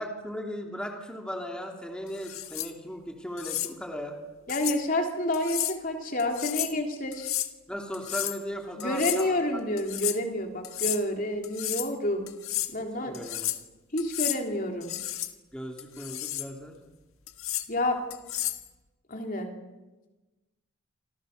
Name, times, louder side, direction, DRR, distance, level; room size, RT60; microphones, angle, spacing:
voice 1, 0.0-4.1 7.7-9.3 13.0-13.6 15.5-16.8, equal, 5° left, 1 dB, 3.1 m, -37 dB
sound 1, 2.2-2.7 3.4-3.7 4.5-4.8 5.3-5.8 6.2-6.8 7.1-7.5 7.9-8.4 8.8-9.3 9.8-10.2 10.6-11.0 11.4-11.9 12.3-12.7 13.1-13.6 14.0-14.4 14.8-15.3 15.8-16.5 17.3-17.7 18.1-18.6, left 14 dB, 85° left, 1.6 m, -32 dB
voice 2, 4.5-7.3 8.8-12.2 12.7-13.1 13.9-14.9 17.7-18.0 19.1-19.5, left 1 dB, 40° left, 3 dB, 3.4 m, -29 dB
28.5 x 25.5 x 6.7 m, 1.2 s
head